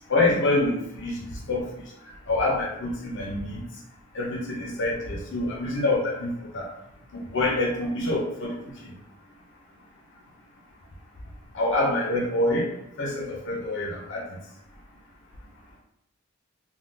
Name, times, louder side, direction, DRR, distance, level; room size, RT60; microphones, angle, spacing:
voice 1, 0.1-1.2 1.5-1.6 2.3-3.5 4.1-6.6 7.3-8.6 11.5-12.7 13.0-14.2, left 2 dB, 60° left, -2 dB, 0.7 m, -26 dB
3.6 x 2.4 x 2.6 m, 0.84 s
head